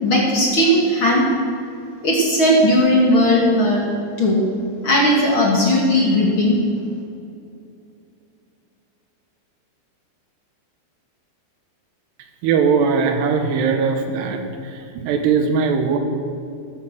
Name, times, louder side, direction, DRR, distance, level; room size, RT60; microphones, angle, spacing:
voice 1, 0.0-1.3 2.0-3.8 4.2-4.4 4.8-6.6, left 1 dB, 35° left, -3 dB, 2.5 m, -16 dB
voice 2, 12.4-16.0, right 5 dB, 90° right, 5 dB, 3.4 m, -20 dB
14.0 x 13.0 x 6.4 m, 2.6 s
omnidirectional pair, 4.6 m